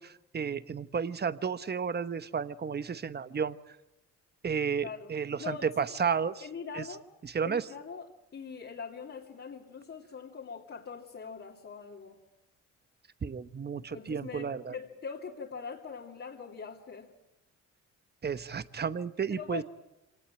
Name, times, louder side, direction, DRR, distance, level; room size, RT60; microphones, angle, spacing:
voice 1, 0.0-3.6 4.4-6.4 6.7-6.9 7.2-7.7 13.2-14.8 18.2-19.6, right 6 dB, 35° right, 14 dB, 1.1 m, -32 dB
voice 2, 6.4-7.0 7.4-12.2 13.9-17.1 19.3-19.6, left 6 dB, 45° left, -2 dB, 2.9 m, -42 dB
25.5 x 18.5 x 9.0 m, 0.93 s
cardioid pair, 90°, 30 cm